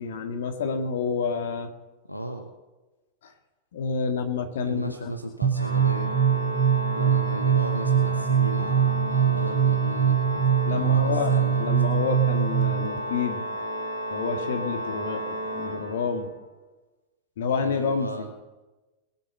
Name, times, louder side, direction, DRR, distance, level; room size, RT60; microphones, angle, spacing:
voice 1, 0.0-1.7 3.2-3.3 3.7-5.1 10.7-13.4 14.1-16.3 17.4-18.3, left 5 dB, 60° left, 6 dB, 1.7 m, -29 dB
voice 2, 2.1-2.5 4.6-6.2 6.9-11.7 17.6-18.3, equal, 85° left, 6 dB, 1.0 m, -35 dB
sound 1, 5.4-13.0, right 8 dB, 40° right, 1.0 m, -23 dB
Organ, 5.5-16.4, right 1 dB, 85° right, 3.1 m, -33 dB
21.5 x 7.4 x 6.4 m, 1.2 s
figure-of-eight pair, 90°, 0 cm